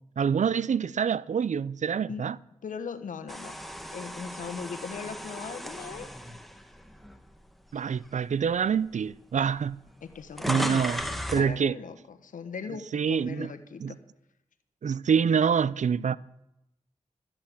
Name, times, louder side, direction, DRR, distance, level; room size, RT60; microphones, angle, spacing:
voice 1, 0.2-2.4 7.7-9.8 10.5-11.0 11.3-11.8 12.9-13.5 13.8-13.9 14.8-16.2, right 7 dB, 65° right, 0.5 m, -26 dB
voice 2, 2.6-3.6 3.9-6.1 10.0-14.0, left 6 dB, 90° left, 1.2 m, -39 dB
sound 1, 3.3-7.5 8.0-8.2 9.1-9.2 9.4-11.5, equal, ahead, 1.6 m, -36 dB
13.5 x 8.7 x 8.4 m
cardioid pair, 45°, 13 cm